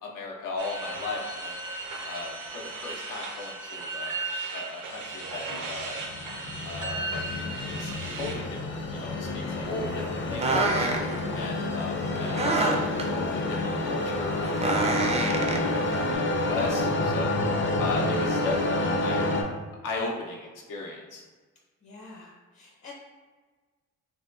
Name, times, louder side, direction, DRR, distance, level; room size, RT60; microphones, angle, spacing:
voice 1, 0.0-1.5 2.0-4.1 4.5-6.0 6.6-7.0 7.6-8.6 8.9-10.9 11.3-14.5 14.8-15.5 15.9-17.3 17.8-19.3 19.8-21.2, left 3 dB, 80° left, -1 dB, 0.7 m, -36 dB
sound 1, 0.6-8.3, right 2 dB, 75° right, 0.6 m, -36 dB
sound 2, 5.3-19.4, left 2 dB, 40° left, 0.5 m, -29 dB
sound 3, 9.7-16.1, right 2 dB, 20° right, 0.3 m, -29 dB
voice 2, 11.2-11.6 21.8-22.9, left 3 dB, 55° left, -5 dB, 0.9 m, -46 dB
3.5 x 2.2 x 2.4 m, 1.4 s
cardioid pair, 85°, 31 cm